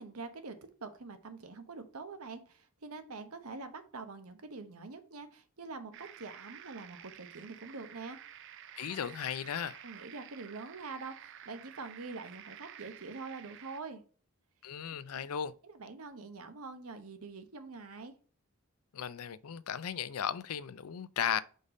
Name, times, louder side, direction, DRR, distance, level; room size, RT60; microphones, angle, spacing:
voice 1, 0.0-8.2 9.8-14.0 15.6-18.1, right 4 dB, 80° right, 1.0 m, -45 dB
sound 1, 5.9-13.8, right 10 dB, 55° right, 0.5 m, -51 dB
voice 2, 8.8-9.8 14.6-15.5 18.9-21.4, left 8 dB, 80° left, 0.5 m, -36 dB
5.3 x 4.1 x 4.9 m
head